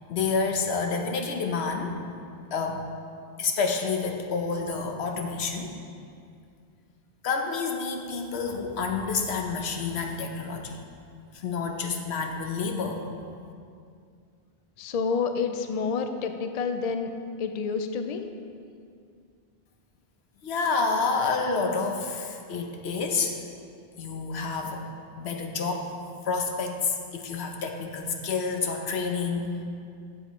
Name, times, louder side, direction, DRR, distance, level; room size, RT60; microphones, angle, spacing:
voice 1, 0.1-1.9 2.5-2.8 3.4-5.7 7.2-10.8 11.3-13.1 20.4-23.4 24.0-24.9 25.2-25.9 26.3-29.6, left 4 dB, 90° left, 3 dB, 1.1 m, -29 dB
voice 2, 14.8-17.1 17.4-18.2, left 5 dB, 50° left, 7 dB, 0.5 m, -28 dB
12.5 x 7.0 x 3.1 m, 2.3 s
omnidirectional pair, 1.1 m